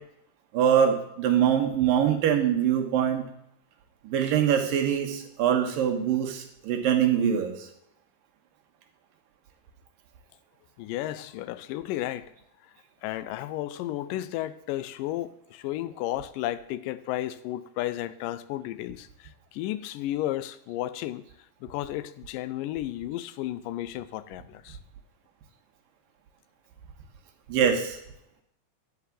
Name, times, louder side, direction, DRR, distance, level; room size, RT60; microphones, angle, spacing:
voice 1, 0.5-3.2 4.0-7.7 27.5-28.0, right 9 dB, 90° right, 3.0 m, -23 dB
voice 2, 10.8-12.3 13.0-21.3 21.6-24.8, left 14 dB, 80° left, 2.2 m, -33 dB
11.0 x 4.8 x 8.3 m
omnidirectional pair, 3.9 m